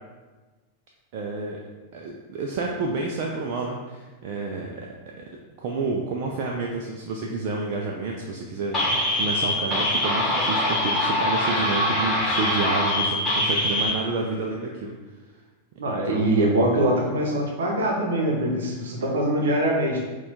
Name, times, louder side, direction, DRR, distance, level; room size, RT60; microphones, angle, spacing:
voice 1, 1.1-1.6 1.9-4.9 5.2-5.3 5.6-14.9 15.9-16.3, right 3 dB, 45° right, 0 dB, 0.4 m, -29 dB
sound 1, 8.7-13.9, left 1 dB, 15° left, 1.4 m, -23 dB
voice 2, 15.8-20.0, right 1 dB, 65° right, -1 dB, 0.9 m, -23 dB
4.2 x 2.3 x 4.2 m, 1.3 s
figure-of-eight pair, 90°, 0 cm